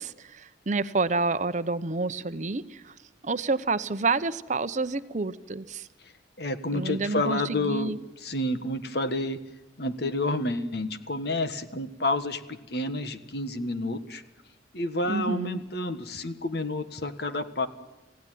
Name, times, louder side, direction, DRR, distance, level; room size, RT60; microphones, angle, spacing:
voice 1, 0.0-2.9 3.2-5.9 6.7-8.0 15.1-15.6, right 3 dB, 40° right, 13 dB, 0.8 m, -29 dB
voice 2, 6.4-9.4 9.8-14.2 14.7-17.7, left 2 dB, 60° left, 10 dB, 1.6 m, -30 dB
27.5 x 16.5 x 9.2 m, 1.0 s
head